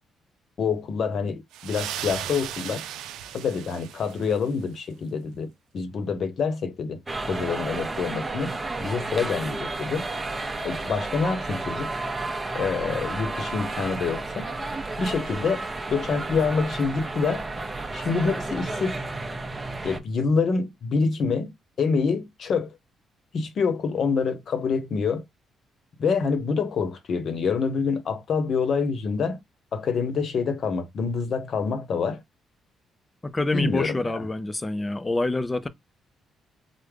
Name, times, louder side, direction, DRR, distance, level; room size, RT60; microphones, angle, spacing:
voice 1, 0.6-2.8 3.3-7.0 7.3-8.5 8.8-10.0 10.6-11.9 12.5-14.5 15.0-15.6 15.9-17.5 17.9-19.0 19.8-21.5 21.8-22.8 23.3-25.2 26.0-29.4 29.7-32.2 33.5-34.3, left 5 dB, 60° left, 0.8 m, -26 dB
sound 1, 1.5-4.6, right 11 dB, 90° right, 0.4 m, -36 dB
sound 2, 7.1-20.0, right 2 dB, 20° right, 0.6 m, -32 dB
voice 2, 33.2-35.7, left 2 dB, 20° left, 0.5 m, -26 dB
3.6 x 2.1 x 3.3 m
cardioid pair, 90°, 0 cm